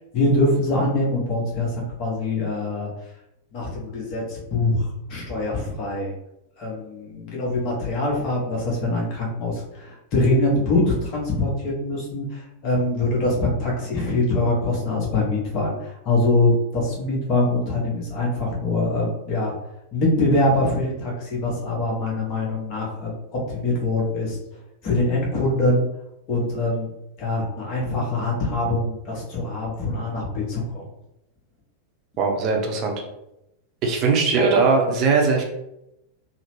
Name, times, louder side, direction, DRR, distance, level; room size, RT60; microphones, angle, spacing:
voice 1, 0.1-2.9 3.5-6.1 6.6-19.5 19.9-24.4 24.8-25.9 26.3-26.9 27.2-30.8, left 2 dB, 40° left, -2 dB, 1.0 m, -23 dB
voice 2, 32.2-33.0 33.8-35.4, right 4 dB, 35° right, 2 dB, 0.6 m, -20 dB
2.9 x 2.0 x 3.0 m, 0.86 s
figure-of-eight pair, 90°, 0 cm